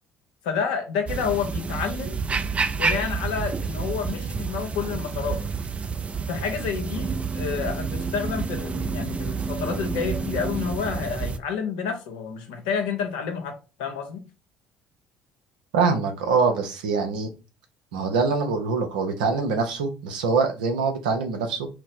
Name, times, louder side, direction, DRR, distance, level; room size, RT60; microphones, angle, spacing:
voice 1, 0.4-2.2 2.7-5.4 6.3-14.2, left 6 dB, 80° left, 0.8 m, -29 dB
sound 1, 1.1-11.4, right 5 dB, 30° right, 0.5 m, -29 dB
voice 2, 15.7-17.3 17.9-21.7, right 4 dB, 85° right, 0.7 m, -24 dB
4.3 x 2.0 x 4.1 m
hypercardioid pair, 65°, 4 cm